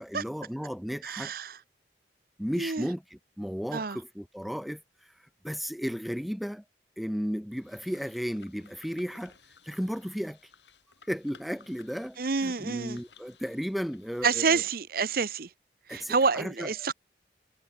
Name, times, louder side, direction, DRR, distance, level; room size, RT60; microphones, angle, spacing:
voice 1, 0.0-1.3 2.4-6.6 7.0-9.3 9.6-10.5 11.1-14.6 15.9-16.9, equal, ahead, 0.4 m, -34 dB
voice 2, 1.0-1.6 2.6-2.9 3.7-4.0 12.2-13.0 14.2-15.5 15.9-16.9, right 5 dB, 55° right, 0.8 m, -28 dB
sound 1, 7.5-14.3, left 5 dB, 80° left, 7.3 m, -58 dB
head